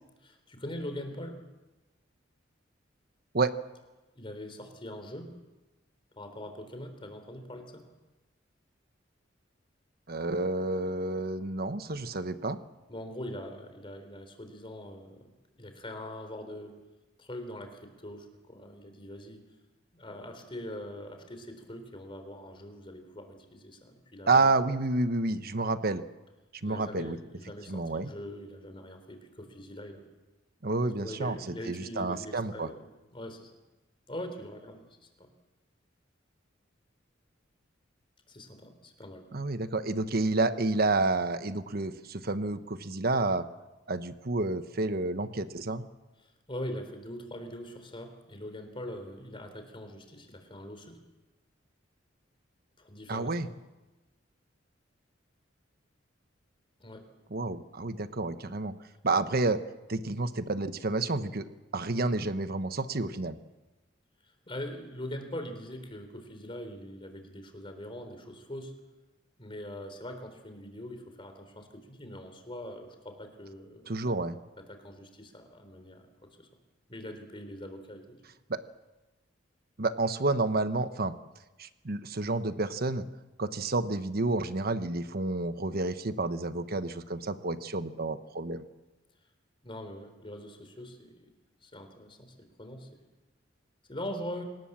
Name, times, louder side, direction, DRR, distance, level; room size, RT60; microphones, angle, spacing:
voice 1, 0.2-1.4 4.2-5.3 6.2-7.8 12.9-15.3 15.6-16.8 17.2-19.4 19.9-24.5 26.6-30.1 31.0-33.5 34.1-35.3 38.3-39.3 46.2-51.0 52.8-53.5 56.8-57.0 59.2-59.3 64.5-68.8 69.4-74.1 74.6-76.1 76.4-76.5 76.9-78.2 89.6-91.3 91.6-92.9 93.9-94.4, left 1 dB, 30° left, 7 dB, 3.8 m, -42 dB
voice 2, 10.1-12.6 24.3-26.0 26.6-27.2 27.7-28.1 30.6-32.7 39.3-43.5 43.9-45.8 53.1-53.5 57.3-58.7 59.0-59.6 59.9-61.5 61.7-63.4 73.9-74.4 78.5-78.6 79.8-81.1 81.6-83.0 83.4-88.6, right 3 dB, 55° right, 11 dB, 1.2 m, -29 dB
26.5 x 19.0 x 7.5 m, 1.1 s
head